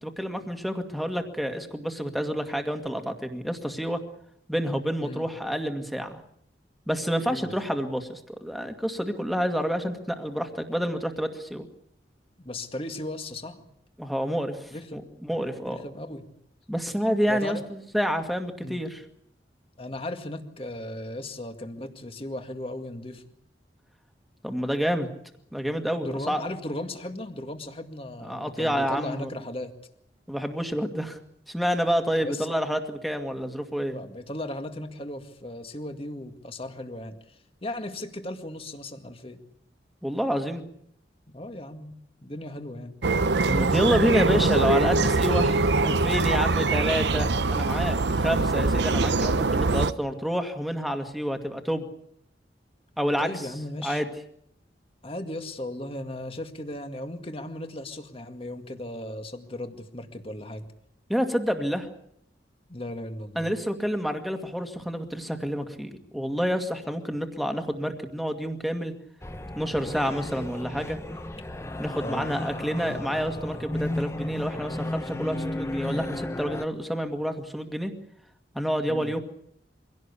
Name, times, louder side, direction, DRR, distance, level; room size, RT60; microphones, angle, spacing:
voice 1, 0.0-4.0 4.5-6.2 6.9-11.7 14.0-15.8 16.7-19.0 24.4-25.1 25.5-26.4 28.2-29.3 30.3-31.2 31.5-34.0 40.0-40.6 43.5-51.9 53.0-53.3 53.8-54.1 61.1-61.9 63.4-68.9 69.5-71.0 71.8-77.9 78.5-79.2, equal, ahead, 5 dB, 2.1 m, -28 dB
voice 2, 12.4-13.6 14.7-15.1 15.7-16.3 17.3-17.6 18.6-18.8 19.8-23.2 26.0-29.7 32.2-32.5 33.8-39.4 41.3-42.0 42.2-43.0 53.2-54.0 55.0-60.7 62.7-63.5 72.0-72.3 78.9-79.1, left 1 dB, 30° left, 6 dB, 2.0 m, -36 dB
sound 1, 43.0-49.9, right 3 dB, 80° right, 0.8 m, -23 dB
sound 2, 69.2-76.7, left 1 dB, 15° left, 1.0 m, -34 dB
24.5 x 17.0 x 8.4 m, 0.72 s
head